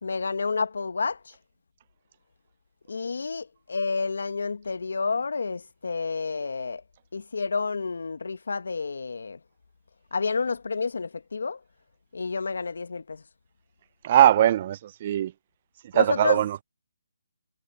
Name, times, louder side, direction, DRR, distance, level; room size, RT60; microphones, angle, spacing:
voice 1, 0.0-1.3 2.9-6.8 7.1-9.4 10.1-11.6 12.1-13.2 15.9-16.4, left 4 dB, 70° left, 1.7 m, -30 dB
voice 2, 14.0-15.3 15.9-16.6, right 11 dB, 35° right, 0.5 m, -20 dB
figure-of-eight pair, 155°, 0 cm